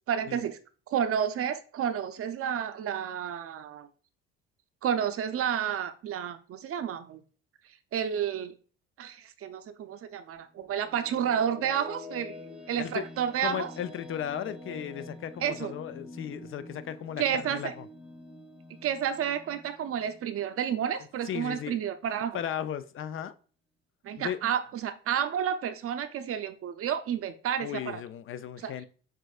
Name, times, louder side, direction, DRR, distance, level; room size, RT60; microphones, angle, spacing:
voice 1, 0.1-0.6 0.9-3.9 4.8-7.2 7.9-8.6 9.0-12.3 12.7-13.7 15.4-15.7 17.2-17.7 18.8-22.4 24.0-28.0 28.6-28.7, right 8 dB, 50° right, 0.5 m, -30 dB
sound 1, 10.4-21.7, left 1 dB, ahead, 0.8 m, -47 dB
voice 2, 13.4-17.9 21.3-21.8 22.3-23.3 24.2-24.4 27.6-28.9, left 10 dB, 45° left, 0.4 m, -36 dB
6.1 x 2.5 x 2.4 m
supercardioid pair, 75°, 29 cm